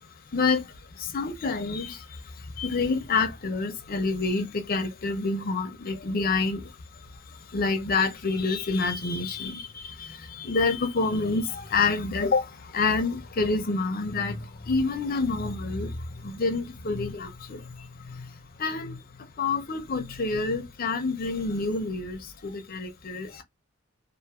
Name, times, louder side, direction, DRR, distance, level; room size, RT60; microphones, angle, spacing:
voice 1, 0.3-23.4, left 3 dB, 45° left, 0.5 m, -28 dB
2.6 x 2.3 x 2.7 m
head